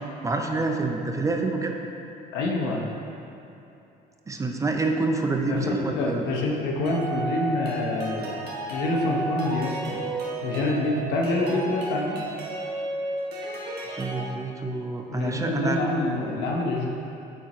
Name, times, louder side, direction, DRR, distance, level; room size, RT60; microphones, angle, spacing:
voice 1, 0.2-1.7 4.3-6.2 13.9-15.8, right 3 dB, 20° right, 3 dB, 0.5 m, -27 dB
voice 2, 2.3-2.9 5.4-10.0 10.4-12.2 15.1-16.9, left 2 dB, 90° left, -1 dB, 0.9 m, -27 dB
sound 1, 6.9-14.2, right 2 dB, 70° right, 1.2 m, -32 dB
9.2 x 4.2 x 3.0 m, 2.9 s
cardioid pair, 110°, 17 cm